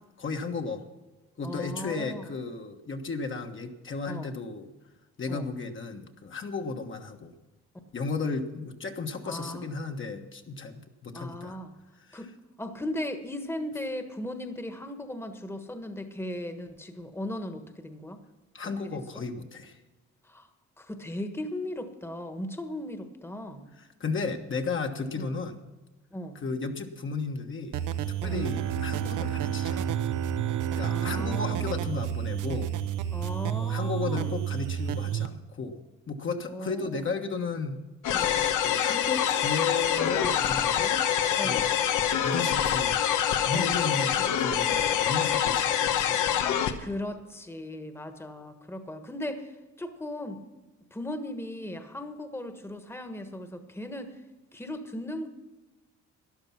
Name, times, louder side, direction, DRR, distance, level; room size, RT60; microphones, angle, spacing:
voice 1, 0.2-0.8 1.4-4.7 5.2-7.3 7.9-11.6 12.1-12.2 18.5-19.8 24.0-25.6 26.4-27.8 28.2-30.1 30.7-32.7 33.5-37.8 38.6-41.0 41.4-41.7 42.2-43.0 43.5-46.5, left 4 dB, 40° left, 4 dB, 1.4 m, -34 dB
voice 2, 1.4-2.3 4.1-4.3 5.3-5.4 9.2-9.6 11.1-11.7 12.1-12.3 12.6-18.2 18.8-19.0 20.2-20.5 20.8-23.7 25.2-25.4 26.1-26.4 28.2-28.5 30.9-31.8 33.1-34.4 36.5-37.0 38.1-38.5 41.4-41.7 43.5-43.8 46.8-50.4 50.9-54.2 54.5-55.3, left 1 dB, 10° left, 8 dB, 1.4 m, -37 dB
sound 1, 27.7-35.3, right 10 dB, 85° right, 0.9 m, -31 dB
Bowed string instrument, 28.3-33.4, right 10 dB, 65° right, 0.6 m, -36 dB
sound 2, 38.0-46.7, left 9 dB, 90° left, 1.1 m, -25 dB
13.0 x 11.0 x 5.9 m, 1.1 s
cardioid pair, 90°, 30 cm